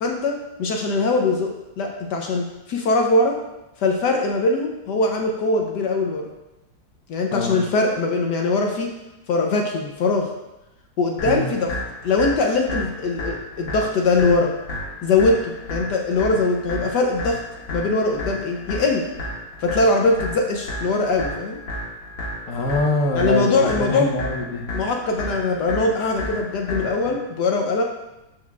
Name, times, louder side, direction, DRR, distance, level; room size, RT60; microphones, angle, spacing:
voice 1, 0.0-1.5 1.8-3.4 3.8-6.3 7.1-8.9 9.3-10.3 11.0-11.7 12.0-14.5 15.0-17.4 17.7-19.0 19.6-21.6 23.1-24.1 24.7-27.8, left 3 dB, 70° left, 2 dB, 1.3 m, -21 dB
sound 1, 11.2-27.2, left 1 dB, 90° left, 2.5 m, -32 dB
voice 2, 22.5-24.6, left 2 dB, 55° left, 1 dB, 1.1 m, -24 dB
13.0 x 4.9 x 2.4 m, 0.93 s
omnidirectional pair, 2.0 m